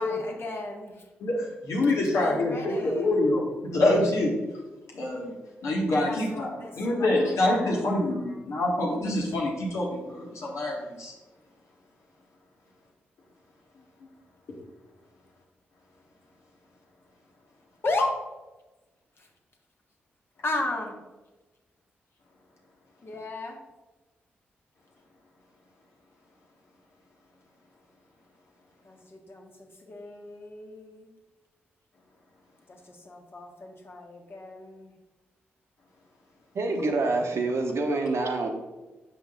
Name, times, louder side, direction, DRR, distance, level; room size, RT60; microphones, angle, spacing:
voice 1, 0.0-1.0 2.1-3.1 6.0-8.2 13.7-13.9 17.8-18.2 19.2-19.3 20.4-20.9 23.0-23.6 28.8-29.5 29.8-31.1 32.7-34.9, left 2 dB, 45° left, 1 dB, 1.5 m, -35 dB
voice 2, 1.2-3.4 3.7-4.3 4.9-5.3 5.6-11.1, left 1 dB, 70° left, -2 dB, 1.6 m, -26 dB
voice 3, 36.5-38.5, right 3 dB, 60° right, 3 dB, 1.0 m, -26 dB
6.0 x 5.1 x 3.8 m, 1.1 s
hypercardioid pair, 40°, 5 cm